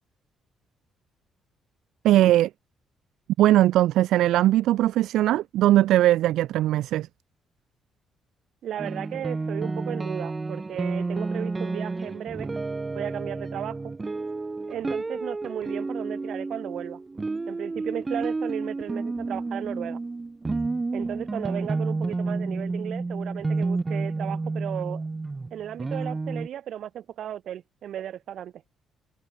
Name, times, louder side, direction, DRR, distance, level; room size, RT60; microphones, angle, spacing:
voice 1, 2.0-2.5 3.4-7.1, right 14 dB, 85° right, 0.5 m, -20 dB
voice 2, 8.6-12.5 12.9-13.8 14.7-17.0 17.5-20.0 20.9-25.0 25.5-28.5, right 10 dB, 70° right, 2.1 m, -35 dB
sound 1, 8.8-26.5, right 3 dB, 25° right, 1.3 m, -30 dB
cardioid pair, 90°, 0 cm